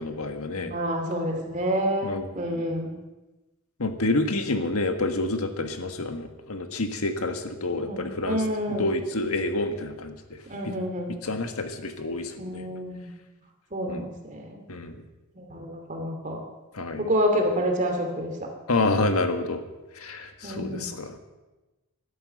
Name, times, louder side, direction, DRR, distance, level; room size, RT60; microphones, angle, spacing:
voice 1, 0.0-0.7 2.0-2.3 3.8-8.4 8.7-10.4 10.6-10.8 11.1-12.6 13.9-14.1 14.7-15.0 16.7-17.1 18.7-19.6 19.9-21.2, left 2 dB, 85° left, 7 dB, 1.5 m, -28 dB
voice 2, 0.5-2.9 7.7-8.9 10.5-11.1 12.4-13.1 13.7-14.6 15.3-16.4 17.0-18.5 20.4-20.9, equal, 35° right, 3 dB, 2.7 m, -28 dB
12.5 x 12.0 x 7.8 m, 1.1 s
head